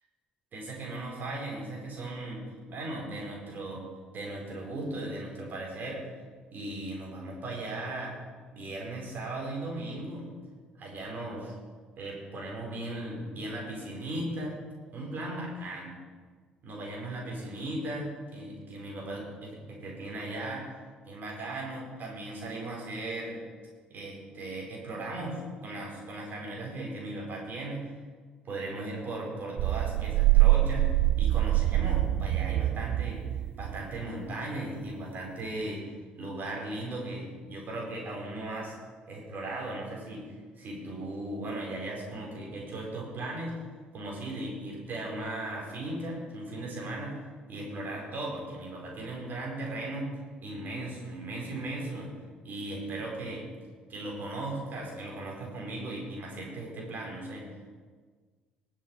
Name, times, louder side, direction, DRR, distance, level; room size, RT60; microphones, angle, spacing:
voice 1, 0.5-2.4 2.7-3.8 4.1-6.0 6.5-8.2 8.5-10.3 10.8-11.6 12.0-14.5 14.9-16.0 16.6-20.7 21.1-23.4 23.9-28.0 28.5-33.2 33.6-35.8 36.2-38.8 39.1-43.6 43.9-47.2 47.5-50.1 50.4-52.1 52.4-53.5 53.9-57.5, right 2 dB, 45° right, -2 dB, 5.0 m, -37 dB
sound 1, 29.6-34.0, right 15 dB, 60° right, 0.4 m, -25 dB
19.5 x 7.8 x 5.0 m, 1.5 s
figure-of-eight pair, 50°, 4 cm